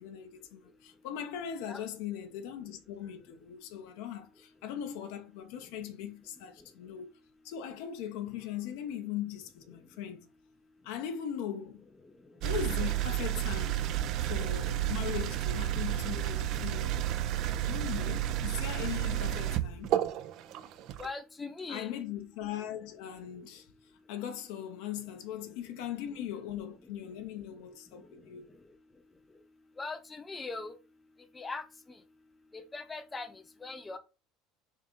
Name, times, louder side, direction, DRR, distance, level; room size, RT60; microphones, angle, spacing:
voice 1, 0.0-7.1 7.4-10.2 10.8-11.9 12.3-13.8 14.2-16.9 17.6-20.0 21.7-23.7 24.1-28.5, left 10 dB, 75° left, 0.6 m, -39 dB
sound 1, 12.4-21.1, right 12 dB, 60° right, 0.3 m, -31 dB
voice 2, 21.0-21.9 29.8-30.7 31.3-31.6 32.5-33.3 33.6-34.0, left 3 dB, 20° left, 0.7 m, -40 dB
3.6 x 2.8 x 3.7 m
hypercardioid pair, 80°, 0 cm